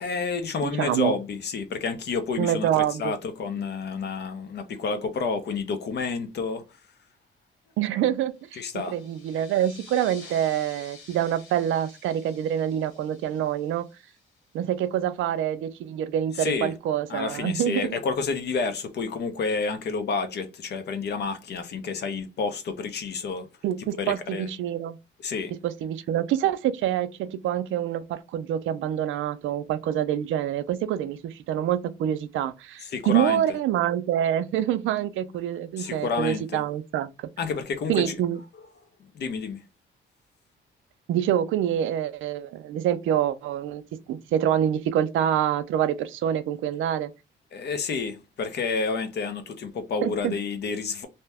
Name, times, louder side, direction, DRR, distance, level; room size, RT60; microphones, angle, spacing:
voice 1, 0.0-6.6 8.6-9.0 16.4-16.7 17.1-23.5 24.0-24.5 25.2-25.5 32.8-33.4 35.8-36.6 37.4-38.2 39.1-39.6 47.5-51.1, left 4 dB, 55° left, 0.7 m, -29 dB
voice 2, 0.6-1.1 2.4-3.1 7.8-13.9 14.5-17.9 23.6-25.0 25.6-37.3 37.9-38.4 41.1-43.8 44.1-47.1 50.0-50.4, right 10 dB, 80° right, 0.4 m, -26 dB
sound 1, 8.4-14.6, left 3 dB, 85° left, 1.1 m, -50 dB
2.7 x 2.2 x 3.4 m
cardioid pair, 90°, 20 cm